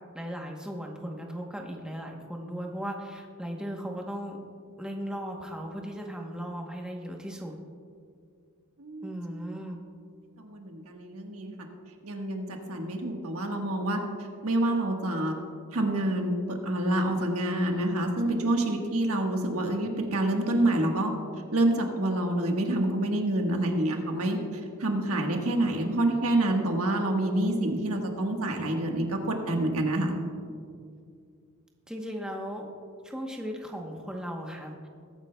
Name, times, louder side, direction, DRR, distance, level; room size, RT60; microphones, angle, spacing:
voice 1, 0.1-4.4 4.8-7.5 9.0-9.8 31.9-32.7 33.0-34.9, equal, 5° right, 0 dB, 0.9 m, -37 dB
voice 2, 8.8-9.5 10.4-11.5 12.0-14.0 14.4-15.3 15.7-21.1 21.5-30.1, right 1 dB, 80° right, 2 dB, 1.4 m, -27 dB
21.0 x 9.4 x 2.3 m, 2.2 s
head